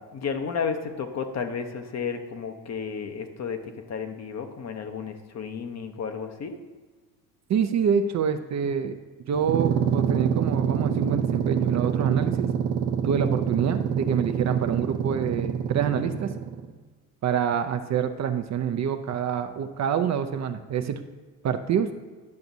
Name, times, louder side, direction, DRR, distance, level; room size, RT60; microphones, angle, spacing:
voice 1, 0.0-3.6 3.9-6.6, left 6 dB, 40° left, 7 dB, 0.9 m, -32 dB
voice 2, 7.5-9.0 9.3-12.5 13.0-16.3 17.2-21.0 21.4-21.9, right 7 dB, 40° right, 7 dB, 0.5 m, -26 dB
sound 1, 9.3-16.7, right 8 dB, 80° right, 0.8 m, -26 dB
10.5 x 5.7 x 2.7 m, 1.4 s
supercardioid pair, 75°, 43 cm